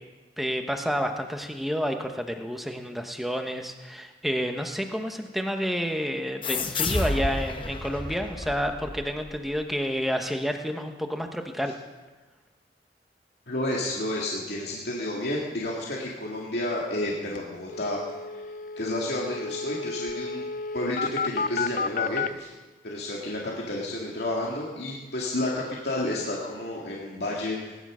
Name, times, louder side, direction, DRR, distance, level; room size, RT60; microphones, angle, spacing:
voice 1, 0.4-11.7, equal, ahead, 4 dB, 1.1 m, -29 dB
sound 1, 6.4-9.6, left 3 dB, 30° left, 1.0 m, -31 dB
voice 2, 13.5-18.0 18.3-18.4 18.8-20.4 20.7-22.5 22.8-27.8, left 1 dB, 70° left, -3 dB, 2.3 m, -31 dB
sound 2, 17.0-17.1 17.4-17.5 17.7-22.3, left 5 dB, 45° left, 0.4 m, -32 dB
19.0 x 11.0 x 6.3 m, 1.2 s
head